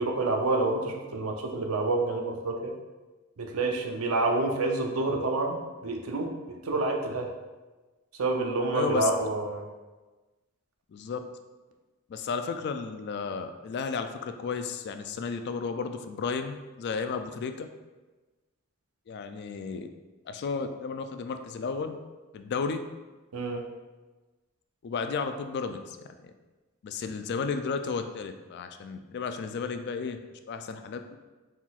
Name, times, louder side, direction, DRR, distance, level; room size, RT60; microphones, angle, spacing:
voice 1, 0.0-2.7 3.4-5.6 5.8-7.3 8.2-9.7 23.3-23.6, right 2 dB, 90° right, 3 dB, 0.6 m, -28 dB
voice 2, 8.7-9.1 10.9-11.2 12.1-17.7 19.1-19.9 20.3-22.0 22.3-22.8 24.8-26.0 26.8-30.2 30.5-31.2, left 5 dB, 50° left, 7 dB, 0.3 m, -33 dB
4.3 x 3.8 x 2.4 m, 1.2 s
head